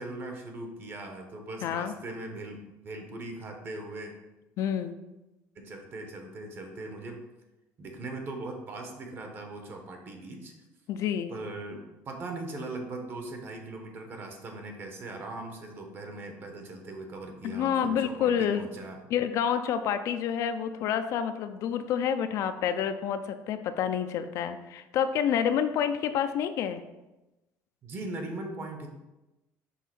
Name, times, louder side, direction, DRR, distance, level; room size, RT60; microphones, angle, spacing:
voice 1, 0.0-4.1 5.5-7.2 7.8-10.5 11.3-19.0 27.8-28.9, right 2 dB, 35° right, 4 dB, 1.0 m, -40 dB
voice 2, 1.6-1.9 4.6-5.0 10.9-11.3 17.4-18.7 19.1-26.8, left 8 dB, 55° left, 9 dB, 0.4 m, -28 dB
5.5 x 3.6 x 5.9 m, 1.0 s
cardioid pair, 165°, 6 cm